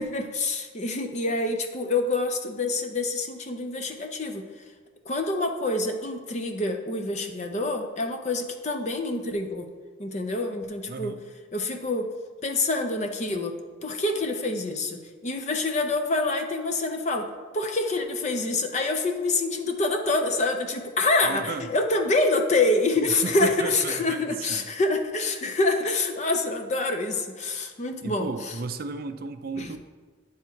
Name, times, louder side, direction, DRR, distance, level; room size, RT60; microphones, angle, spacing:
voice 1, 0.0-4.4 5.1-9.7 10.0-11.2 11.5-12.1 12.4-28.5 29.6-29.8, left 2 dB, 35° left, 5 dB, 0.6 m, -26 dB
voice 2, 10.9-11.2 21.2-21.7 23.0-24.6 28.0-29.8, right 4 dB, 50° right, 9 dB, 0.4 m, -34 dB
10.0 x 3.5 x 4.5 m, 1.4 s
head